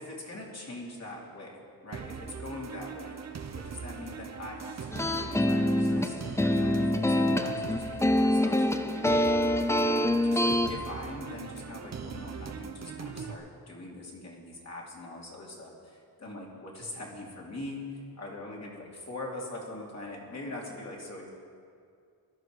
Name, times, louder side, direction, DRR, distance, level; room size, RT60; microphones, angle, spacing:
voice 1, 0.0-3.1 3.5-21.3, left 2 dB, 45° left, -3 dB, 2.8 m, -43 dB
sound 1, 1.9-13.3, right 6 dB, 45° right, 0.9 m, -41 dB
sound 2, 4.9-10.7, left 1 dB, 5° left, 0.5 m, -25 dB
17.0 x 12.5 x 4.8 m, 2.3 s
wide cardioid pair, 140°, 38 cm